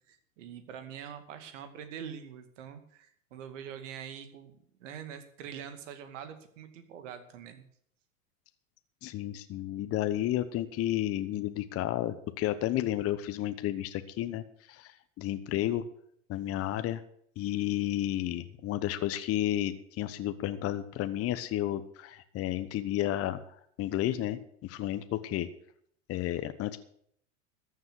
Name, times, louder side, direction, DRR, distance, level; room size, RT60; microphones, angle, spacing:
voice 1, 0.1-7.6, right 8 dB, 65° right, 9 dB, 2.3 m, -44 dB
voice 2, 9.0-14.4 14.7-15.8 16.3-17.0 17.4-23.4 23.8-25.5 26.1-26.8, left 13 dB, 35° left, 11 dB, 1.1 m, -32 dB
14.0 x 7.4 x 8.1 m, 0.65 s
hypercardioid pair, 105°, 40 cm